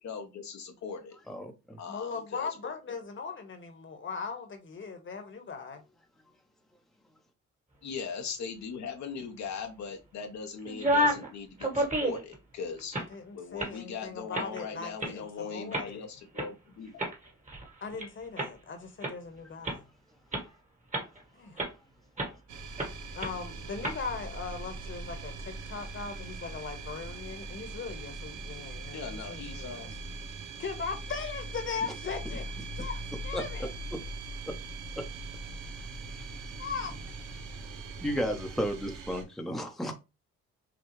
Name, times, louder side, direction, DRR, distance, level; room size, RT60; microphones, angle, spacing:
voice 1, 0.0-1.2 1.8-2.5 7.8-13.0 13.3-17.1 28.9-30.0, left 5 dB, 65° left, 1.0 m, -40 dB
voice 2, 1.3-1.8 33.3-33.4 33.9-34.0 34.5-34.6 35.0-35.1 36.2-36.3 38.0-39.9, equal, ahead, 0.9 m, -33 dB
voice 3, 1.9-5.8 12.9-16.1 17.8-19.8 21.3-21.6 23.1-29.9 30.6-33.7 36.6-36.9, left 5 dB, 40° left, 1.3 m, -39 dB
sound 1, 10.7-11.3 11.6-12.3 12.8-13.1 13.6-13.8 14.3-14.6 15.0-15.1 15.7-15.9 16.4-16.5 17.0-18.1 18.4-18.5 19.0-19.1 19.6-19.8 20.3-20.4 20.9-21.2 21.6-21.7 22.2-22.4 22.8-22.9 23.2-23.3 23.8-24.0, right 1 dB, 25° right, 1.5 m, -29 dB
sound 2, 22.5-39.2, right 2 dB, 80° right, 0.9 m, -41 dB
6.1 x 2.3 x 3.2 m
cardioid pair, 90°, 30 cm